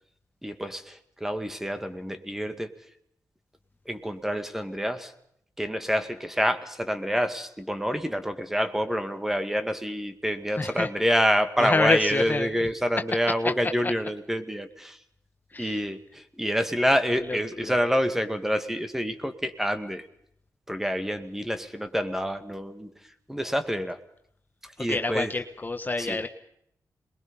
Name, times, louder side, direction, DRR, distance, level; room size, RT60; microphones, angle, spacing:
voice 1, 0.4-2.7 3.9-5.1 5.6-15.0 15.6-20.1 20.7-22.9 23.3-24.0 24.8-25.3 26.0-26.2, equal, 5° right, 8 dB, 2.1 m, -27 dB
voice 2, 10.6-10.9 11.6-12.5 15.5-15.8 17.3-17.7 24.8-26.3, left 3 dB, 30° left, 7 dB, 1.3 m, -27 dB
27.0 x 21.5 x 5.6 m, 0.70 s
cardioid pair, 90°, 6 cm